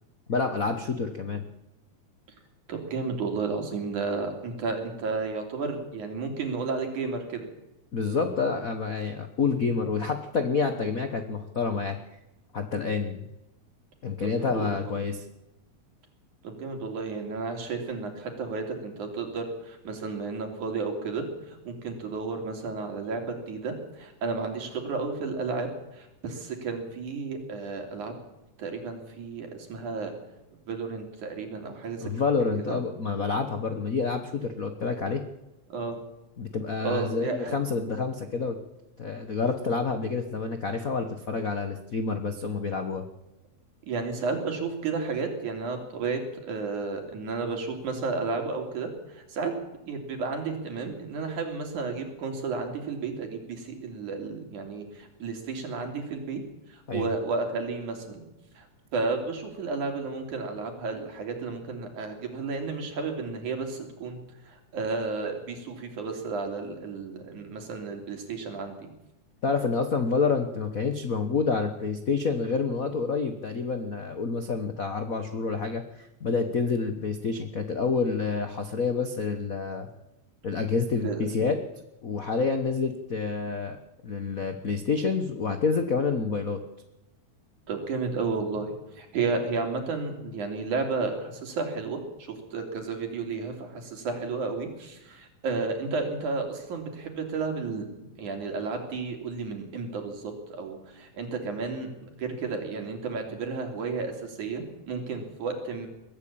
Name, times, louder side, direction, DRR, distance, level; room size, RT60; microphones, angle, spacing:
voice 1, 0.3-1.4 7.9-12.0 12.5-13.3 14.0-15.2 32.0-35.2 36.4-38.6 39.0-43.0 56.9-57.1 69.4-79.9 80.4-81.6 82.0-83.8 84.0-86.6, left 4 dB, 80° left, 7 dB, 0.7 m, -28 dB
voice 2, 2.7-7.5 14.4-14.9 16.4-28.1 28.6-30.1 30.7-32.1 32.4-32.8 35.7-36.0 36.8-37.6 43.8-49.5 49.9-56.4 56.7-58.2 58.5-58.7 58.9-64.2 64.4-68.9 80.9-81.2 87.7-105.9, right 4 dB, 80° right, 4 dB, 4.6 m, -32 dB
22.0 x 14.0 x 8.6 m, 0.95 s
omnidirectional pair, 3.4 m